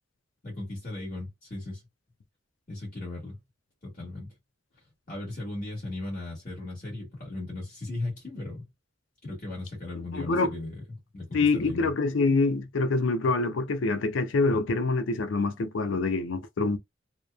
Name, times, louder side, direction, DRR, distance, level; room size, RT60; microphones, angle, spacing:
voice 1, 0.4-1.8 2.7-3.4 3.8-4.3 5.1-8.7 9.2-10.8 11.1-11.9, left 2 dB, 40° left, 1.3 m, -37 dB
voice 2, 10.1-10.5 11.3-16.8, left 3 dB, 75° left, 0.5 m, -25 dB
2.8 x 2.0 x 2.3 m
head